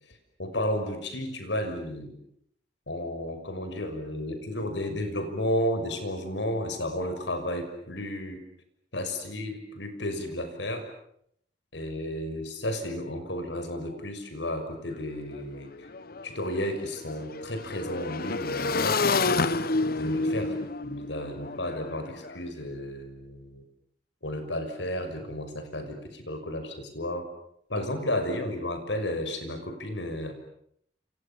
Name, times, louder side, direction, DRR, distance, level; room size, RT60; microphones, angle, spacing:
voice 1, 0.4-2.1 2.9-8.4 8.9-10.9 11.7-15.9 16.2-19.0 19.8-20.6 20.8-23.6 24.2-27.3 27.7-30.3, left 1 dB, 85° left, 7 dB, 6.1 m, -32 dB
Motorcycle / Engine, 14.9-15.0 15.3-22.4, left 3 dB, 55° left, 1.2 m, -29 dB
30.0 x 28.0 x 7.1 m, 0.70 s
head